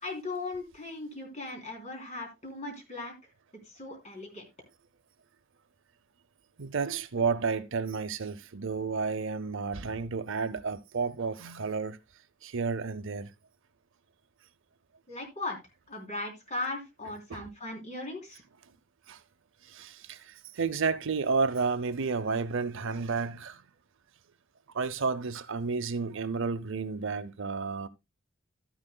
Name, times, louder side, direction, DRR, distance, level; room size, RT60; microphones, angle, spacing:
voice 1, 0.0-3.1 3.7-4.4 15.1-15.6 15.9-18.4, left 2 dB, 35° left, 3.4 m, -38 dB
voice 2, 6.6-12.0 12.4-13.3 17.3-17.5 19.1-19.2 19.7-20.2 20.6-23.6 24.7-27.9, right 5 dB, 65° right, 0.7 m, -31 dB
12.5 x 10.0 x 2.2 m
head